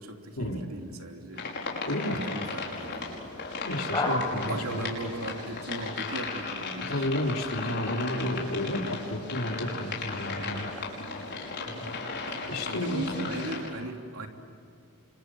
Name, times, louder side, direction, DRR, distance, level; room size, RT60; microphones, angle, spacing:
voice 1, 0.0-1.5 2.0-3.2 4.5-7.1 11.6-12.0 12.3-12.4 12.7-14.3, right 1 dB, 80° right, 3 dB, 3.0 m, -38 dB
sound 1, 1.3-13.7, left 4 dB, 55° left, 5.6 m, -36 dB
voice 2, 1.9-2.3 3.7-4.8 6.9-10.7 12.4-13.2, left 1 dB, 75° left, 1 dB, 3.7 m, -31 dB
sound 2, 2.6-13.6, left 2 dB, 20° left, 5.4 m, -39 dB
29.0 x 26.0 x 7.8 m, 2.5 s
head